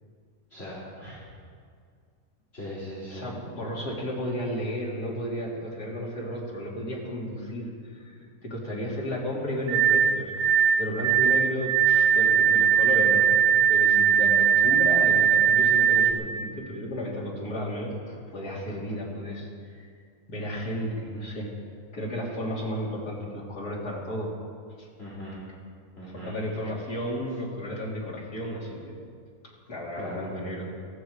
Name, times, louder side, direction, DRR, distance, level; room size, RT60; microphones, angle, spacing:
voice 1, 0.5-1.1 2.5-3.3 14.0-14.3 25.0-25.4 26.0-26.3 30.0-30.3, equal, 40° left, -9 dB, 3.9 m, -39 dB
voice 2, 3.1-13.4 13.7-19.9 20.3-21.5 21.9-24.3 24.8-24.9 26.0-29.0 29.7-30.7, equal, 90° left, -4 dB, 3.6 m, -33 dB
sound 1, 9.7-16.1, right 8 dB, 75° right, 1.6 m, -20 dB
18.0 x 14.5 x 5.0 m, 2.1 s
omnidirectional pair, 1.6 m